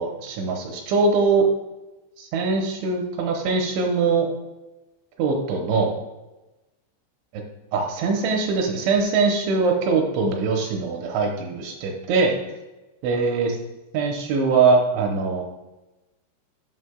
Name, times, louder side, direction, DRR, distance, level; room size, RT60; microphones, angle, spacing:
voice 1, 0.0-1.5 2.2-4.3 5.2-5.9 7.7-12.3 13.0-13.6 13.9-15.4, right 4 dB, 80° right, 1 dB, 2.8 m, -22 dB
11.0 x 5.8 x 2.2 m, 1.0 s
omnidirectional pair, 5.8 m